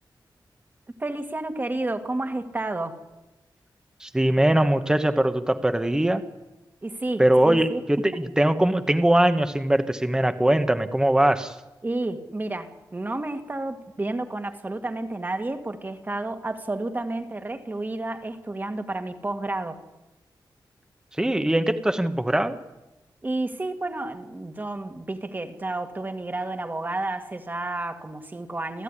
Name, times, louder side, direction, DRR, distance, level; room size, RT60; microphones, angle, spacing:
voice 1, 1.0-3.0 6.8-7.8 8.1-8.2 11.8-19.8 23.2-28.8, right 2 dB, 25° right, 7 dB, 1.9 m, -31 dB
voice 2, 4.0-6.2 7.2-11.6 21.1-22.5, right 1 dB, 10° right, 9 dB, 1.1 m, -21 dB
28.0 x 15.5 x 9.9 m, 1.0 s
wide cardioid pair, 160°, 8 cm